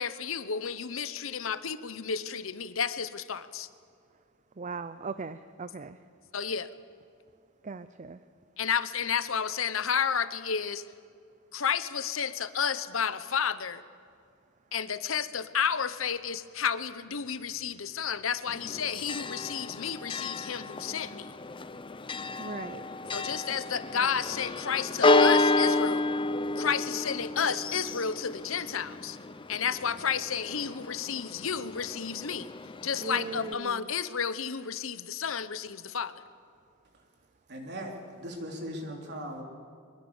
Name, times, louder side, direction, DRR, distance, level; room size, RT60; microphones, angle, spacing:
voice 1, 0.0-3.7 6.3-6.7 8.6-10.8 11.5-13.8 14.7-21.3 23.1-26.1 26.6-29.2 29.5-32.5 32.8-36.1, left 7 dB, 65° left, 13 dB, 0.9 m, -31 dB
voice 2, 4.6-6.0 7.6-8.2 22.4-22.8 33.0-33.8, right 4 dB, 35° right, 12 dB, 0.6 m, -38 dB
Church bell, 18.5-33.5, left 2 dB, 25° left, 0.7 m, -30 dB
voice 3, 37.5-39.4, equal, 55° right, 2 dB, 3.5 m, -39 dB
23.5 x 21.0 x 7.2 m, 2.3 s
head